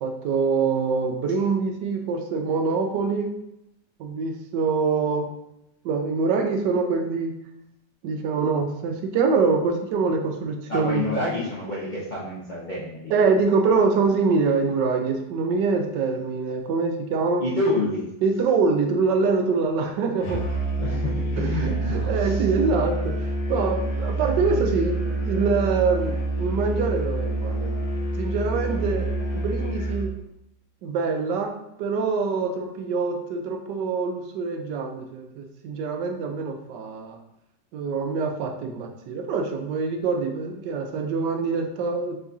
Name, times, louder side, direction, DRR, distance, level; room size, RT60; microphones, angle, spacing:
voice 1, 0.0-3.3 4.0-5.3 5.8-7.4 8.0-11.1 13.1-17.4 18.2-20.4 21.4-30.1 30.8-37.2 37.7-42.2, right 4 dB, 75° right, 4 dB, 1.2 m, -25 dB
voice 2, 10.7-13.1 17.4-18.0 19.8-19.9 20.7-22.4, left 2 dB, 40° left, -8 dB, 0.6 m, -28 dB
Musical instrument, 20.2-30.1, right 2 dB, 25° left, 1.5 m, -27 dB
4.7 x 3.8 x 2.6 m, 0.80 s
omnidirectional pair, 1.9 m